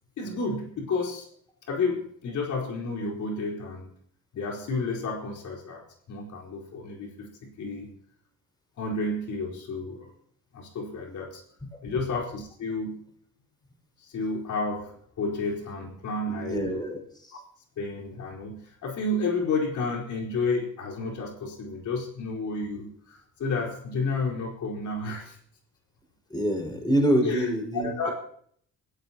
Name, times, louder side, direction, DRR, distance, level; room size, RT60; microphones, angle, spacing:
voice 1, 0.2-1.3 1.7-3.9 4.3-7.9 8.8-10.1 10.5-11.4 11.8-13.0 14.0-16.9 17.3-17.4 17.8-25.4 27.2-28.1, left 3 dB, 70° left, -1 dB, 4.6 m, -31 dB
voice 2, 16.3-17.4 26.3-28.1, right 1 dB, 15° left, 2 dB, 5.7 m, -27 dB
29.0 x 16.5 x 3.0 m, 0.63 s
cardioid pair, 90°, 30 cm